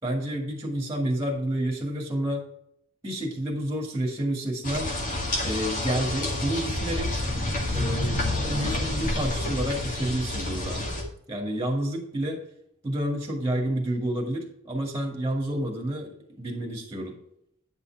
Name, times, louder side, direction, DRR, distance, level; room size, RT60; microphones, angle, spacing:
voice 1, 0.0-2.5 3.0-4.9 5.4-7.3 7.7-10.8 11.3-12.4 12.8-17.2, right 1 dB, 15° right, 0 dB, 2.0 m, -29 dB
sound 1, 4.6-11.0, left 1 dB, 35° left, 2.0 m, -28 dB
9.7 x 5.6 x 4.7 m, 0.72 s
head